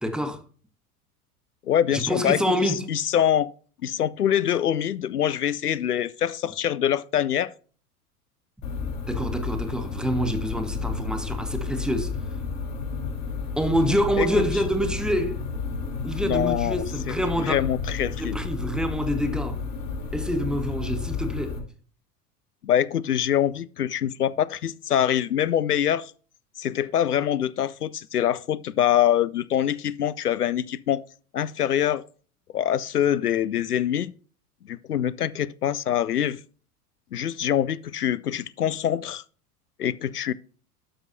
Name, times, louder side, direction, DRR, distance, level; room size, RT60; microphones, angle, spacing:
voice 1, 0.0-0.4 1.9-2.9 9.1-12.1 13.6-15.4 16.0-17.6 18.2-19.6 20.1-21.6, equal, ahead, 1.2 m, -26 dB
voice 2, 1.7-2.4 2.9-3.5 3.8-7.5 14.2-14.4 16.2-18.4 22.6-26.1 26.6-31.0 31.3-32.0 32.5-34.1 34.7-36.4 37.1-39.2 39.8-40.3, left 10 dB, 80° left, 0.5 m, -24 dB
sound 1, 8.6-21.6, left 4 dB, 60° left, 2.7 m, -31 dB
12.5 x 6.1 x 2.7 m
figure-of-eight pair, 85°, 45 cm